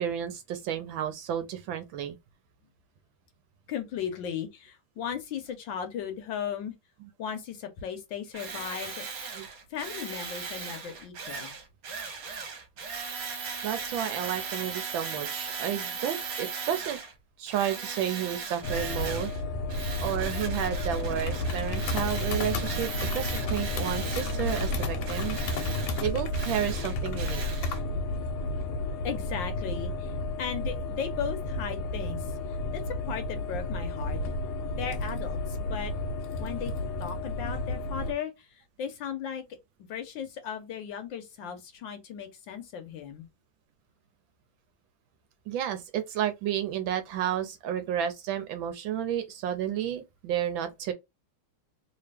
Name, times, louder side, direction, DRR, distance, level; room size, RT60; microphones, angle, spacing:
voice 1, 0.0-2.2 9.3-9.5 13.6-17.0 17.4-19.3 20.0-25.4 26.0-27.4 45.5-50.9, right 10 dB, 75° right, 1.2 m, -31 dB
voice 2, 3.7-6.7 7.2-9.3 9.7-11.5 29.0-34.2 34.7-35.9 36.4-36.7 37.0-39.4 39.9-43.3, left 8 dB, 70° left, 1.3 m, -36 dB
Tools, 8.3-17.1 17.5-19.4 19.7-27.8, right 5 dB, 55° right, 1.2 m, -38 dB
sound 1, 18.6-38.1, left 1 dB, 90° left, 1.7 m, -32 dB
sound 2, 20.9-25.9, left 4 dB, 40° left, 1.1 m, -40 dB
3.3 x 2.8 x 3.3 m
omnidirectional pair, 2.4 m